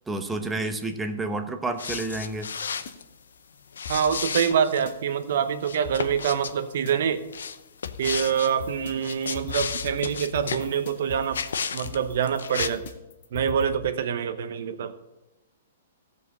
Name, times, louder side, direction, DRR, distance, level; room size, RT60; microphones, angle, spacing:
voice 1, 0.1-2.5, right 2 dB, 10° right, 7 dB, 0.9 m, -30 dB
sound 1, 1.8-3.0 3.7-4.9 5.6-6.6 7.3-8.5 8.9-10.7 11.3-12.0 12.3-12.7, left 6 dB, 85° left, 0.7 m, -33 dB
sound 2, 1.9-2.9 3.8-4.9 5.8-6.9 7.8-13.7, left 6 dB, 60° left, 1.6 m, -41 dB
voice 2, 3.9-7.2 8.0-11.4 11.7-12.9 13.3-14.9, right 8 dB, 60° right, 10 dB, 1.0 m, -25 dB
14.5 x 5.3 x 6.6 m, 1.0 s
hypercardioid pair, 145°, 0 cm